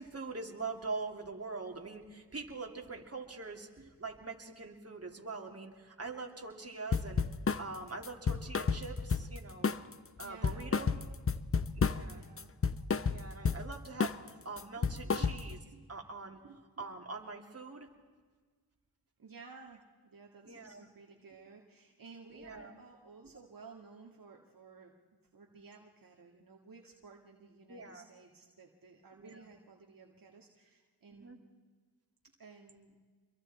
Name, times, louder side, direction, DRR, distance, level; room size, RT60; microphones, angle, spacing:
voice 1, 0.0-7.2 7.6-9.8 10.2-11.0 11.8-12.2 13.1-15.6 15.9-16.4 16.8-17.9 20.4-20.9 22.3-22.7 23.3-23.5 27.7-28.0 29.1-29.5 31.1-31.4, right 3 dB, 35° right, 1 dB, 2.9 m, -43 dB
sound 1, 6.9-7.7 8.0-9.4 9.6-9.9 10.2-12.1 12.4-13.7 14.0-14.3 14.6-15.6, left 5 dB, 30° left, 0.7 m, -31 dB
voice 2, 10.2-10.7 12.1-12.5 14.8-15.3 15.7-15.9 16.4-16.6 19.2-24.9 25.3-31.4 32.4-33.0, right 4 dB, 55° right, 0 dB, 2.0 m, -55 dB
27.5 x 22.5 x 4.4 m, 1.5 s
cardioid pair, 60°, 42 cm